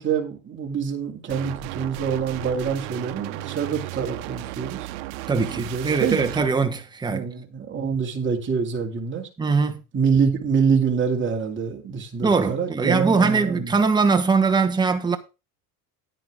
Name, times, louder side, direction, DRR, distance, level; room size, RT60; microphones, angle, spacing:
voice 1, 0.0-4.9 5.3-6.3 7.1-9.3 9.9-13.7, right 6 dB, 30° right, 2.4 m, -25 dB
sound 1, 1.3-6.5, right 17 dB, 75° right, 0.9 m, -35 dB
voice 2, 5.3-7.3 9.4-9.8 12.2-15.2, right 4 dB, 10° right, 1.1 m, -21 dB
9.8 x 9.1 x 3.7 m
supercardioid pair, 115°, 42 cm